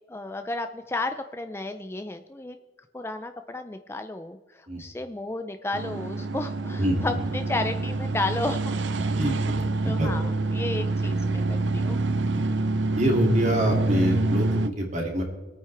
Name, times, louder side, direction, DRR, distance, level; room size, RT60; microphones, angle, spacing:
voice 1, 0.1-2.6 2.9-8.7 9.0-9.2 9.8-12.0, left 2 dB, 15° left, 7 dB, 0.4 m, -33 dB
sound 1, 5.7-14.7, right 2 dB, 90° right, 0.6 m, -26 dB
voice 2, 6.8-7.2 9.1-10.1 12.3-12.4 13.0-15.2, equal, 40° right, 0 dB, 2.6 m, -26 dB
25.0 x 9.4 x 3.4 m, 1.3 s
head